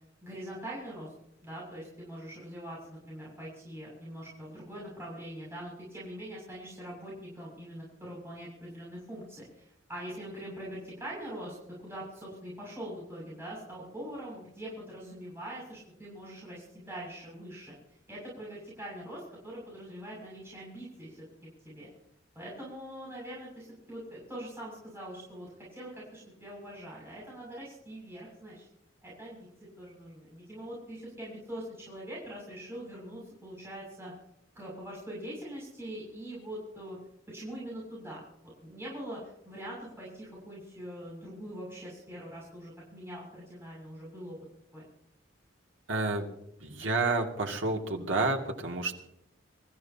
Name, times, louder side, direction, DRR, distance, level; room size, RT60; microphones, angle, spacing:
voice 1, 0.2-1.1 1.4-17.8 18.1-21.3 21.6-21.9 22.4-28.7 29.0-29.5 29.8-34.1 34.6-37.0 37.3-38.2 38.6-44.4 44.7-44.9, right 1 dB, 15° right, -6 dB, 7.1 m, -43 dB
voice 2, 45.9-46.3 46.6-48.9, right 3 dB, 80° right, 2 dB, 2.6 m, -29 dB
27.5 x 14.5 x 2.9 m, 0.81 s
head